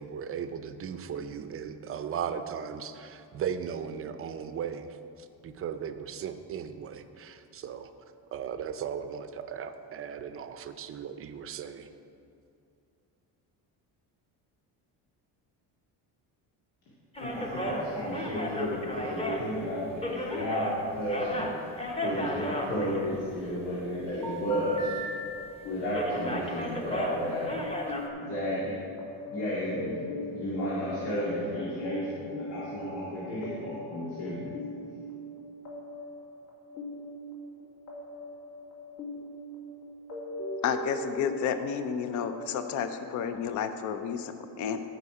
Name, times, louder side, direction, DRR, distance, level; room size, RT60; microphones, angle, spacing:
voice 1, 0.0-7.9 8.3-11.9, right 7 dB, 35° right, 9 dB, 0.5 m, -37 dB
voice 2, 17.2-21.5 22.0-24.9 25.6-27.6 28.2-28.7 29.3-34.5, equal, 80° left, -8 dB, 2.5 m, -32 dB
sound 1, 17.2-20.8 21.0-23.5 24.2-25.1 25.3-25.6 25.9-28.1, equal, 15° left, 0.9 m, -34 dB
sound 2, 24.8-43.3, equal, 60° left, 2.6 m, -41 dB
voice 3, 40.6-44.8, left 7 dB, 45° left, 9 dB, 0.6 m, -31 dB
14.0 x 5.4 x 4.8 m, 2.6 s
cardioid pair, 140°, 41 cm